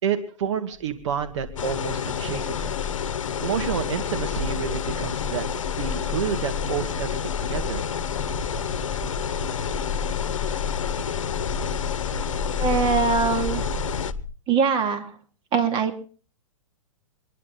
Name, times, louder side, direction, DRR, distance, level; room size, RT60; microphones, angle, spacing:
voice 1, 0.0-2.8 3.4-5.5 5.8-7.8, right 8 dB, 65° right, 8 dB, 2.1 m, -29 dB
sound 1, 1.0-14.2, left 4 dB, 5° right, 7.6 m, -32 dB
sound 2, 1.6-14.1, left 8 dB, 75° left, 0.9 m, -30 dB
voice 2, 12.5-13.6 14.5-15.1 15.5-16.0, right 5 dB, 30° right, 6 dB, 2.3 m, -22 dB
26.0 x 10.5 x 4.4 m, 0.41 s
hypercardioid pair, 115°, 17 cm